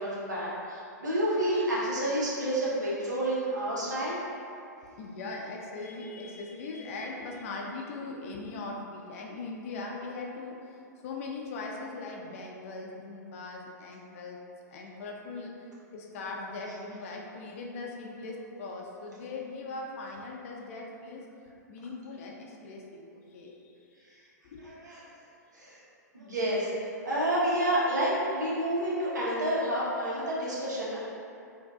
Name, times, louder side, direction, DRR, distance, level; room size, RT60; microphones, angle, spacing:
voice 1, 0.0-4.2 24.0-24.1 24.6-25.0 25.5-25.8 26.1-31.0, right 1 dB, 75° right, -7 dB, 1.1 m, -29 dB
voice 2, 4.8-14.4 14.7-21.2 21.7-23.0 23.3-24.0 24.5-24.7, left 3 dB, 50° left, -1 dB, 0.5 m, -40 dB
4.5 x 2.6 x 2.3 m, 2.6 s
figure-of-eight pair, 105°, 10 cm